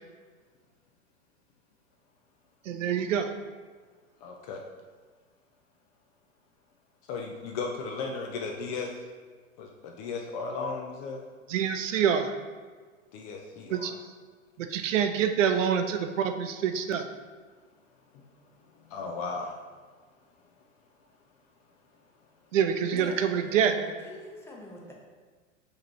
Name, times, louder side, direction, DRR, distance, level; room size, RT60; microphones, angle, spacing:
voice 1, 2.6-3.3 11.5-12.4 13.7-13.9 14.6-17.0 22.5-23.8, right 8 dB, 70° right, 7 dB, 0.5 m, -26 dB
voice 2, 4.2-4.6 7.1-8.9 9.6-11.2 13.1-13.9 14.7-14.8 18.1-18.2 18.8-19.5, left 4 dB, 30° left, 1 dB, 0.4 m, -35 dB
voice 3, 22.9-24.9, left 1 dB, 5° left, -3 dB, 0.7 m, -44 dB
4.8 x 3.1 x 3.1 m, 1.5 s
hypercardioid pair, 105°, 40 cm